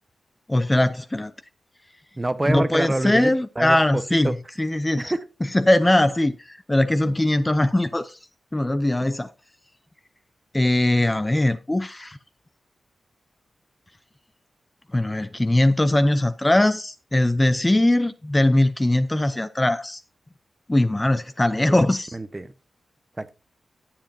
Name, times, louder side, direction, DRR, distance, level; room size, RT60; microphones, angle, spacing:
voice 1, 0.5-1.3 2.5-5.1 5.5-8.2 8.5-9.3 10.5-12.2 14.9-20.0 20.7-22.2, left 1 dB, 15° left, 0.6 m, -21 dB
voice 2, 2.2-3.3 3.6-4.3 5.0-5.2 21.6-21.8 22.1-22.5 23.2-23.3, right 2 dB, 20° right, 0.9 m, -26 dB
19.5 x 7.5 x 2.7 m
wide cardioid pair, 115°, 0 cm